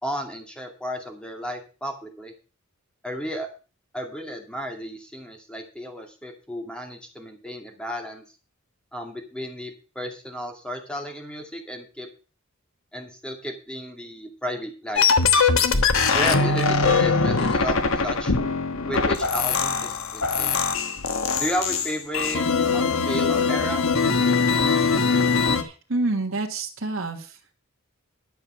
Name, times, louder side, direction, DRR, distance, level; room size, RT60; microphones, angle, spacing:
voice 1, 0.0-2.3 3.0-3.5 3.9-8.2 8.9-12.1 12.9-15.1 16.1-18.3 18.9-20.6 21.4-22.4 22.7-23.8, equal, 5° left, 3 dB, 2.4 m, -33 dB
sound 1, 15.0-25.6, left 4 dB, 75° left, 1.2 m, -22 dB
voice 2, 25.5-27.4, right 2 dB, 65° right, 1 dB, 1.6 m, -28 dB
11.5 x 7.1 x 6.2 m, 0.35 s
head